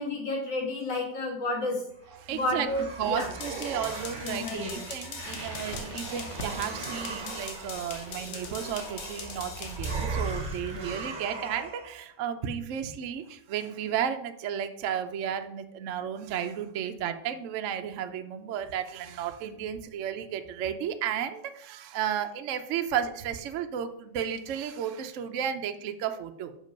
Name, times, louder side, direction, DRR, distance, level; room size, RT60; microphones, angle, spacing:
voice 1, 0.0-3.3 4.2-4.8 10.7-10.9, left 2 dB, 60° left, -1 dB, 2.7 m, -31 dB
sound 1, 2.0-12.0, right 3 dB, 30° right, 1.0 m, -38 dB
voice 2, 2.2-2.7 3.0-26.5, right 9 dB, 80° right, 7 dB, 0.6 m, -33 dB
sound 2, 3.2-10.0, left 6 dB, 80° left, 1.8 m, -42 dB
Crackle, 5.2-11.0, equal, 45° left, 1.1 m, -46 dB
6.4 x 5.2 x 5.2 m, 0.72 s
omnidirectional pair, 2.1 m